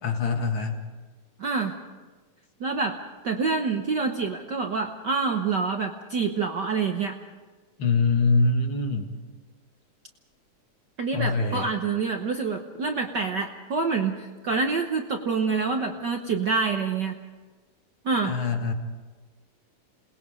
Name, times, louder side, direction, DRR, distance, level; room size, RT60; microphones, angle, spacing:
voice 1, 0.0-0.8 7.8-9.1 11.1-11.7 18.2-18.7, left 3 dB, 45° left, 4 dB, 2.5 m, -24 dB
voice 2, 1.4-1.7 2.6-3.0 3.2-7.2 11.0-17.2 18.0-18.4, right 4 dB, 70° right, 4 dB, 1.0 m, -27 dB
28.0 x 20.5 x 5.1 m, 1.3 s
omnidirectional pair, 3.4 m